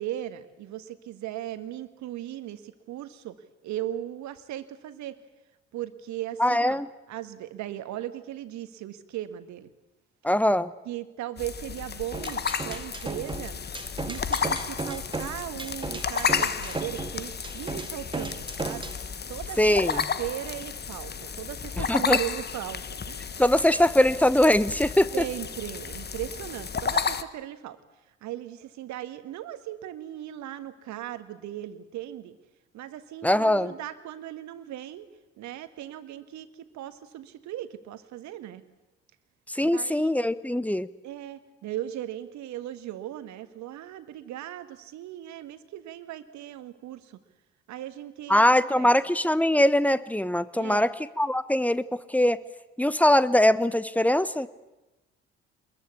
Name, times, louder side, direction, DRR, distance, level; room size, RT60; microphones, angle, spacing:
voice 1, 0.0-5.2 5.7-6.8 7.1-9.7 10.8-13.6 14.0-18.9 19.3-23.4 25.1-27.8 28.2-32.4 32.7-35.1 35.4-38.6 39.6-40.1 41.0-47.2 47.7-48.9 50.6-50.9, right 12 dB, 60° right, 11 dB, 1.7 m, -38 dB
voice 2, 6.4-6.9 10.2-10.7 19.6-20.0 21.9-22.2 23.4-25.1 33.2-33.7 39.5-40.9 48.3-52.4 52.8-54.5, left 1 dB, 5° left, 17 dB, 1.0 m, -22 dB
sound 1, 11.4-27.2, left 6 dB, 30° left, 1.3 m, -32 dB
sound 2, 12.1-19.0, right 3 dB, 15° right, 1.8 m, -35 dB
23.0 x 21.5 x 8.4 m, 1.0 s
figure-of-eight pair, 45°, 33 cm